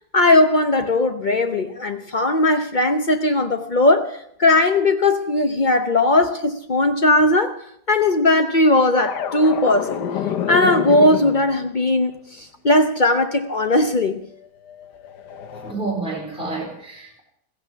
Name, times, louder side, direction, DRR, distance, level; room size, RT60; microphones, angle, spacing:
voice 1, 0.1-4.1 4.4-7.6 7.9-9.9 10.5-12.1 12.4-14.2, left 2 dB, 45° left, 0.6 m, -18 dB
sound 1, 9.0-11.7 14.5-15.7, left 8 dB, 75° left, 1.6 m, -28 dB
voice 2, 15.6-17.2, right 3 dB, 5° right, 4.2 m, -29 dB
16.0 x 15.5 x 5.7 m
omnidirectional pair, 1.8 m